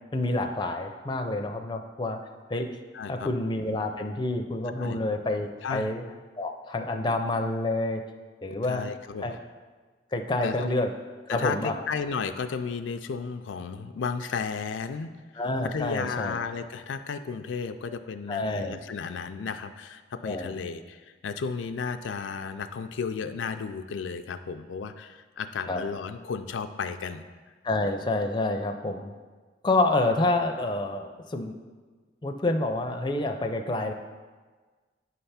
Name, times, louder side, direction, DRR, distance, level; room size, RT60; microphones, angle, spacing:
voice 1, 0.1-2.2 2.5-2.7 3.1-6.0 6.4-8.0 8.4-8.8 9.2-9.4 10.1-10.9 11.3-11.8 15.4-16.4 18.3-18.8 20.2-20.5 25.7-25.8 27.6-29.1 29.6-31.6 32.2-33.9, left 2 dB, 25° left, 4 dB, 0.4 m, -28 dB
voice 2, 2.9-3.3 4.7-5.0 5.6-5.9 8.5-9.4 10.4-10.7 11.3-15.1 15.6-27.2, left 5 dB, 90° left, 8 dB, 0.4 m, -33 dB
9.3 x 3.4 x 5.6 m, 1.4 s
head